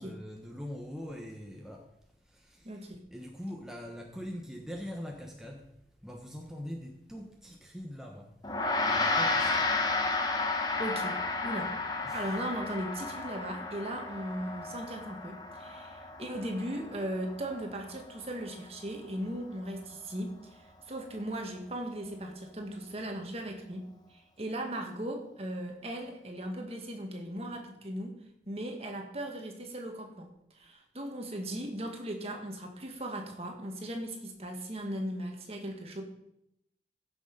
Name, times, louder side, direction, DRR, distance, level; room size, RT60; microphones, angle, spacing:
voice 1, 0.0-1.8 2.3-2.8 3.1-5.7 6.0-8.3 8.9-9.6 12.0-12.3, equal, 5° right, 0 dB, 1.0 m, -42 dB
voice 2, 2.6-3.0 10.8-11.2 11.4-11.7 12.1-23.8 24.1-28.1 28.5-30.3 30.5-36.0, right 1 dB, 35° right, 3 dB, 1.8 m, -38 dB
Gong, 8.4-18.1, left 3 dB, 20° left, 1.2 m, -32 dB
15.5 x 6.6 x 5.3 m, 0.81 s
head